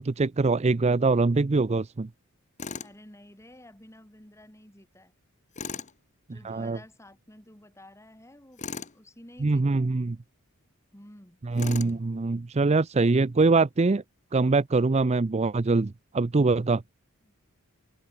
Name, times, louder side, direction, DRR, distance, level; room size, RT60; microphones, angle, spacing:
voice 1, 0.0-2.1 6.3-6.8 9.4-10.2 11.4-14.0 14.3-16.8, right 3 dB, 30° right, 0.5 m, -23 dB
Tools, 2.6-3.0 5.5-5.9 8.6-9.0 11.6-12.0, left 5 dB, 35° left, 1.4 m, -37 dB
voice 2, 2.7-5.1 6.3-8.6 8.9-9.9 10.9-11.4 17.3-17.4, left 1 dB, 15° left, 5.0 m, -51 dB
head